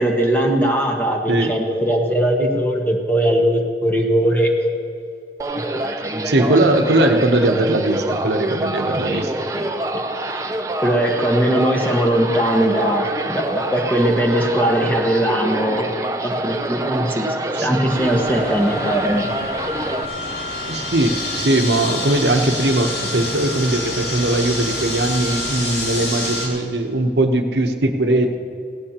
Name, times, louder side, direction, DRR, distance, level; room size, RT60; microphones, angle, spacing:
voice 1, 0.0-4.5 5.8-6.3 9.0-9.2 9.5-10.0 10.8-15.9 16.2-17.3 17.6-19.3, right 1 dB, 10° left, -1 dB, 1.5 m, -20 dB
sound 1, 5.4-20.0, right 1 dB, 20° right, 0.6 m, -26 dB
voice 2, 6.2-9.5 17.5-17.7 20.7-28.4, right 1 dB, 75° right, 5 dB, 0.9 m, -19 dB
sound 2, 17.9-26.5, left 1 dB, 80° left, 3.8 m, -27 dB
17.0 x 16.5 x 3.0 m, 2.4 s
head